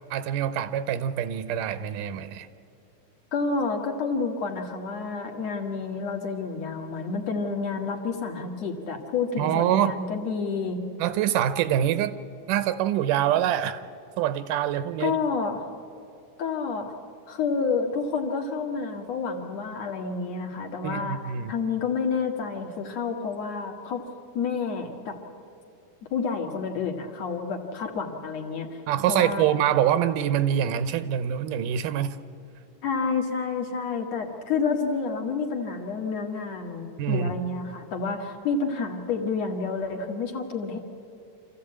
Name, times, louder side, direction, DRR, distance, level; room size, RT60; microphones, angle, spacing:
voice 1, 0.1-2.5 9.4-10.0 11.0-12.2 12.5-13.8 14.2-15.2 20.8-21.5 28.9-32.2 37.0-37.3, right 10 dB, 85° right, 13 dB, 2.4 m, -25 dB
voice 2, 3.3-10.8 15.0-15.6 16.4-16.9 17.3-24.1 24.3-25.2 26.1-28.8 29.1-29.4 32.8-40.8, left 5 dB, 60° left, 2 dB, 2.7 m, -29 dB
26.0 x 14.5 x 8.6 m, 2.6 s
omnidirectional pair, 3.7 m